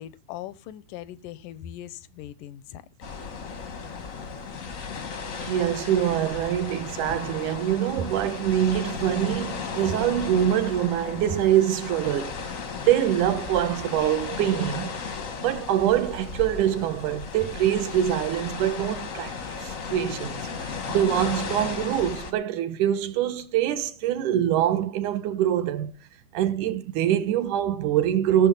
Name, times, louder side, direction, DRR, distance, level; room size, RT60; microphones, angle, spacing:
voice 1, 0.0-2.8, left 12 dB, 85° left, 2.4 m, -40 dB
sound 1, 3.0-22.3, left 5 dB, 55° left, 0.9 m, -35 dB
voice 2, 5.4-12.5 12.9-14.9 15.4-25.9 26.3-28.5, right 11 dB, 75° right, 2.5 m, -24 dB
16.5 x 7.2 x 5.4 m
omnidirectional pair, 3.7 m